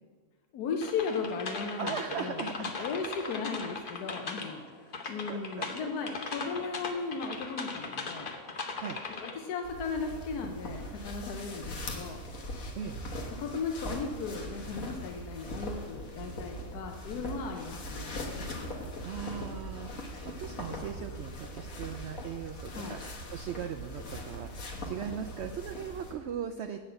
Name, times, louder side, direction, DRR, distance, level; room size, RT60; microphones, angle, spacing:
voice 1, 0.5-4.6 5.1-8.3 9.1-12.2 13.4-18.6 22.7-23.0, left 5 dB, 85° left, 3 dB, 1.3 m, -36 dB
sound 1, 0.8-4.6 4.9-9.3, left 4 dB, 40° left, 0.9 m, -38 dB
voice 2, 1.8-2.7 5.3-5.9 8.8-9.0 12.8-13.0 19.0-23.0 23.3-26.9, right 8 dB, 75° right, 6 dB, 0.6 m, -39 dB
sound 2, 9.6-26.1, equal, 65° left, 1.6 m, -41 dB
8.5 x 5.8 x 7.7 m, 1.5 s
omnidirectional pair, 1.6 m